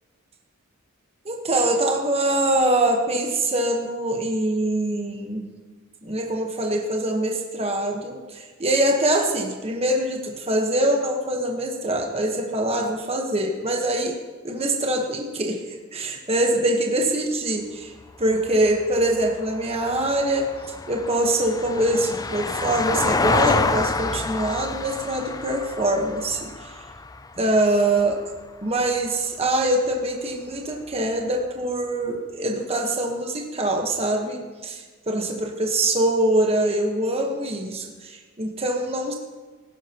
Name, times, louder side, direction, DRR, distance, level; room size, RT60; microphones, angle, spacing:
voice 1, 1.2-5.4 6.0-14.2 14.4-15.6 15.9-17.9 18.2-20.5 20.9-26.7 27.4-28.2 28.6-39.1, right 1 dB, 30° right, 1 dB, 1.2 m, -24 dB
Vehicle, 18.0-28.4 30.7-30.8, left 3 dB, 15° left, 0.3 m, -28 dB
18.0 x 10.5 x 3.0 m, 1.4 s
head